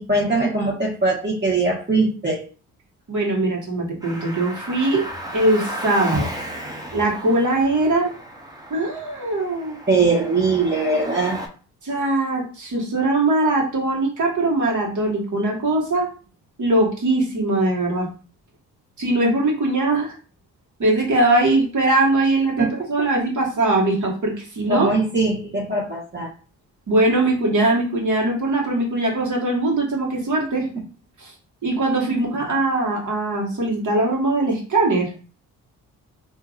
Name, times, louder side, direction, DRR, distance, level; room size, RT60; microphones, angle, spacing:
voice 1, 0.0-2.4 6.1-6.2 9.9-11.4 22.6-23.1 24.7-26.3 32.1-32.2, right 3 dB, 25° right, -4 dB, 1.5 m, -21 dB
voice 2, 3.1-5.0 5.3-6.3 6.9-8.1 8.7-9.8 11.8-16.1 16.6-18.1 19.0-20.1 20.8-24.9 26.9-30.7 31.2-31.3 31.6-35.1, right 2 dB, 50° right, -2 dB, 1.7 m, -21 dB
Car, 4.0-11.5, equal, 10° right, 1.0 m, -35 dB
3.5 x 2.9 x 2.5 m, 0.38 s
hypercardioid pair, 50°, 39 cm